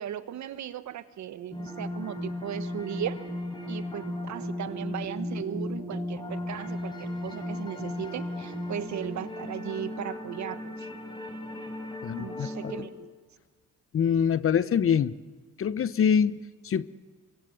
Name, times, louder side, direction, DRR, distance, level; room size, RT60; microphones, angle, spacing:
voice 1, 0.0-3.2 3.7-10.9 12.2-13.1, right 10 dB, 65° right, 1.4 m, -37 dB
sound 1, 1.5-12.8, left 1 dB, 15° left, 4.4 m, -36 dB
voice 2, 12.0-12.7 13.9-15.1 15.6-16.4 16.6-16.8, left 7 dB, 45° left, 0.9 m, -24 dB
25.5 x 23.0 x 7.9 m
cardioid pair, 90°, 30 cm